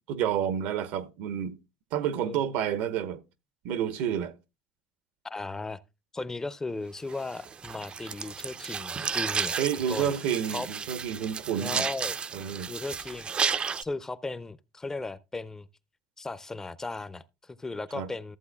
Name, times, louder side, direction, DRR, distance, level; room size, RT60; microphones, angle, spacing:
voice 1, 0.1-1.5 1.9-3.2 3.6-4.3 9.6-11.8 12.3-12.7 17.9-18.1, right 9 dB, 75° right, 1.0 m, -29 dB
voice 2, 5.2-5.8 6.1-10.1 10.5-10.7 11.6-12.2 12.7-13.3 13.8-15.7 16.2-18.4, left 3 dB, 15° left, 0.5 m, -36 dB
sound 1, 7.1-13.8, right 6 dB, 30° right, 0.5 m, -33 dB
14.0 x 7.9 x 2.2 m
supercardioid pair, 105°, 3 cm